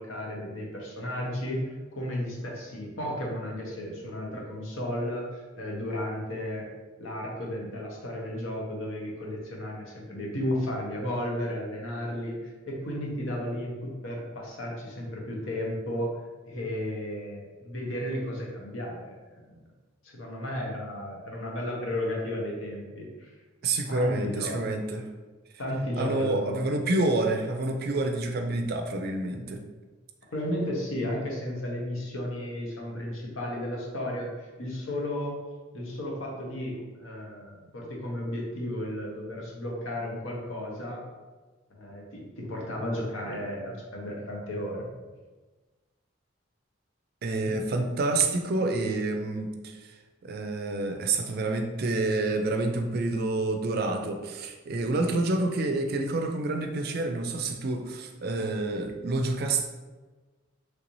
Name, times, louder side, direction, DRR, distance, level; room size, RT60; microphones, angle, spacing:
voice 1, 0.0-6.7 7.0-16.1 16.4-19.1 19.5-19.6 20.0-23.3 23.9-24.6 25.6-26.6 30.3-35.3 35.7-41.0 41.7-44.9 47.5-47.6, left 1 dB, 80° left, -1 dB, 0.8 m, -33 dB
voice 2, 23.6-25.1 26.0-29.6 47.2-49.9 50.2-59.7, right 2 dB, 50° right, 4 dB, 0.4 m, -28 dB
3.2 x 2.6 x 3.0 m, 1.3 s
head